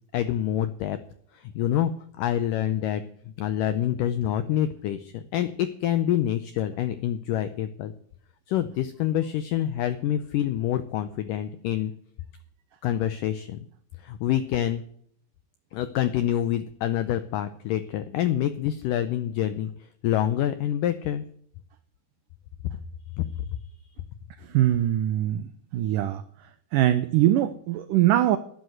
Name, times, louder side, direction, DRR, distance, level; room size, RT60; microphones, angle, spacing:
voice 1, 0.1-1.0 1.3-1.9 2.2-3.0 3.4-7.9 8.5-11.9 12.8-13.6 14.0-14.8 15.7-19.7 20.0-21.2 23.2-23.3, left 11 dB, 85° left, 12 dB, 1.9 m, -26 dB
voice 2, 24.4-26.2 26.7-28.4, right 13 dB, 90° right, 11 dB, 1.8 m, -22 dB
12.0 x 9.6 x 7.9 m, 0.63 s
omnidirectional pair, 4.7 m